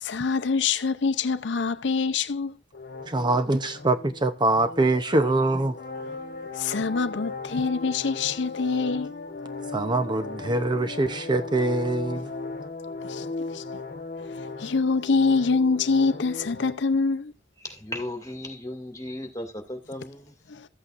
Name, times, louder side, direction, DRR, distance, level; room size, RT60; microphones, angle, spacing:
voice 1, 0.0-2.6 6.5-9.1 13.0-13.3 13.5-13.6 14.3-17.3 20.5-20.7, left 4 dB, 85° left, 0.6 m, -25 dB
sound 1, 2.7-16.7, left 3 dB, 55° left, 1.2 m, -37 dB
voice 2, 3.1-5.8 9.7-12.3, right 2 dB, 25° right, 0.7 m, -24 dB
voice 3, 17.6-20.3, left 1 dB, 20° left, 2.2 m, -36 dB
14.0 x 8.3 x 2.5 m
head